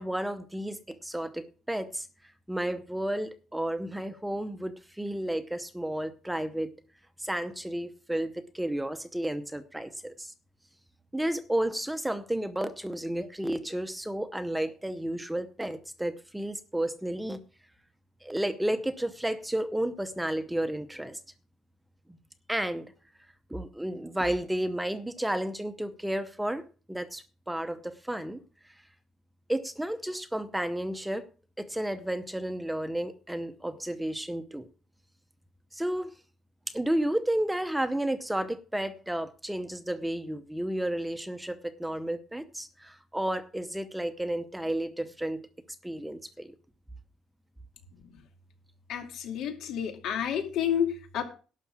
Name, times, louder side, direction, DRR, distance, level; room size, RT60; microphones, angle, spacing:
voice 1, 0.0-2.1 2.5-6.7 7.2-10.3 11.1-17.4 18.2-21.2 22.5-22.9 23.5-26.6 26.9-28.4 29.5-31.3 31.6-34.7 35.7-36.1 36.7-45.5 45.8-46.5, right 1 dB, 5° right, 11 dB, 0.8 m, -32 dB
voice 2, 48.9-51.2, left 9 dB, 70° left, 5 dB, 2.5 m, -30 dB
12.0 x 5.8 x 7.2 m, 0.36 s
cardioid pair, 150°, 0 cm